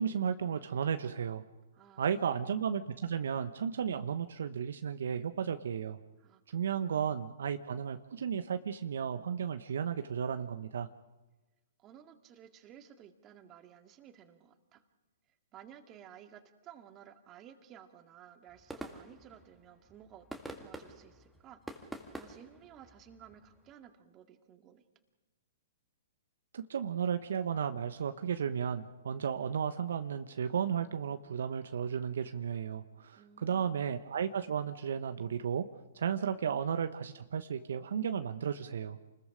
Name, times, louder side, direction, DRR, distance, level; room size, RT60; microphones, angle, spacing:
voice 1, 0.0-1.4 2.0-6.0 6.5-10.9 26.5-35.7 35.9-39.0, right 7 dB, 70° right, 8 dB, 1.0 m, -34 dB
voice 2, 1.7-2.4 6.2-7.1 11.8-14.8 15.5-21.6 22.1-24.8 33.2-33.8, right 9 dB, 30° right, 6 dB, 2.2 m, -55 dB
sound 1, 18.5-23.7, right 1 dB, 5° right, 2.1 m, -48 dB
29.0 x 20.5 x 5.1 m, 1.1 s
hypercardioid pair, 120°, 0 cm